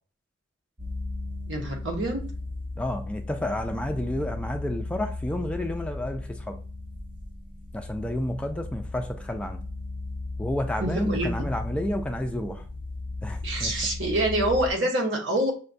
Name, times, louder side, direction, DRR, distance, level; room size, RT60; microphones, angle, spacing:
sound 1, 0.8-14.7, left 2 dB, 25° right, 0.6 m, -35 dB
voice 1, 1.5-2.2 10.8-11.4 13.4-15.5, right 1 dB, 75° right, 2 dB, 0.9 m, -26 dB
voice 2, 2.8-6.6 7.7-9.6 10.4-12.7 13.2-13.7, left 1 dB, 5° left, 4 dB, 0.3 m, -30 dB
5.8 x 2.2 x 2.5 m, 0.39 s
head